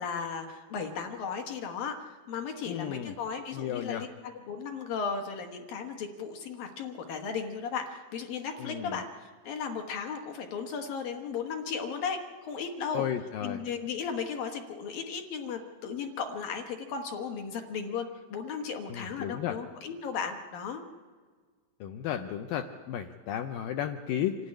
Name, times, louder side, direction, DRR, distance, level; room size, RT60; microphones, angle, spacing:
voice 1, 0.0-13.1 13.4-20.8, left 6 dB, 65° left, 4 dB, 2.6 m, -36 dB
voice 2, 2.7-3.1 3.5-4.0 8.6-8.9 12.9-13.6 18.9-19.6 21.8-24.4, left 10 dB, 85° left, 7 dB, 2.0 m, -33 dB
26.0 x 13.0 x 9.8 m, 1.5 s
omnidirectional pair, 5.0 m